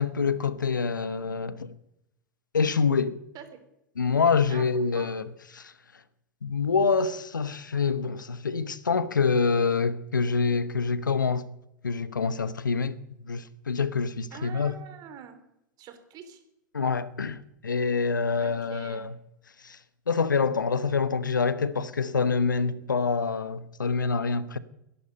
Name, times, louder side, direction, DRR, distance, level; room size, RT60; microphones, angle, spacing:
voice 1, 0.0-1.7 2.5-3.2 4.0-5.2 5.5-5.7 6.4-11.5 11.8-13.0 13.2-14.7 16.7-19.1 19.6-19.8 20.1-24.6, left 5 dB, 85° left, 1.0 m, -26 dB
voice 2, 14.3-15.4 15.8-16.4 18.4-19.1, right 9 dB, 40° right, 3.4 m, -44 dB
21.0 x 11.5 x 5.4 m
hypercardioid pair, 95°, 10 cm